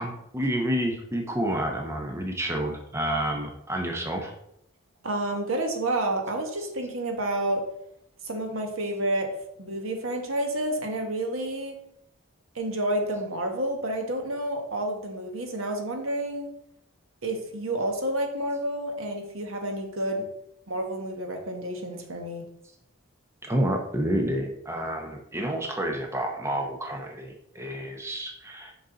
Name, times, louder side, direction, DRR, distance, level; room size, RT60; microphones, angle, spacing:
voice 1, 0.0-4.3 23.4-28.7, right 1 dB, 10° right, 2 dB, 0.7 m, -29 dB
voice 2, 5.0-7.6 8.2-9.3 9.6-11.7 12.5-16.5 17.2-20.3 20.7-22.5, right 1 dB, 70° right, 3 dB, 1.3 m, -29 dB
6.4 x 5.5 x 3.8 m, 0.77 s
head